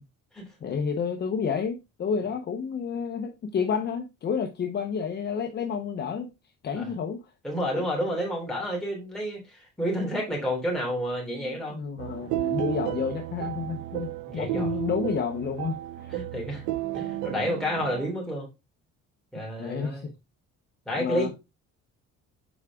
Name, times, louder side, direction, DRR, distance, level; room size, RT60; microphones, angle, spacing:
voice 1, 0.6-6.3 6.6-7.2 11.3-16.1 19.6-20.0 21.0-21.3, left 6 dB, 35° left, 4 dB, 0.8 m, -30 dB
voice 2, 7.4-11.8 14.3-14.7 16.1-16.6 16.9-18.5 19.3-20.1 20.8-21.3, equal, ahead, -3 dB, 3.1 m, -30 dB
sound 1, 12.0-18.1, right 15 dB, 80° right, 0.5 m, -33 dB
7.2 x 4.8 x 3.5 m, 0.25 s
cardioid pair, 160°, 30 cm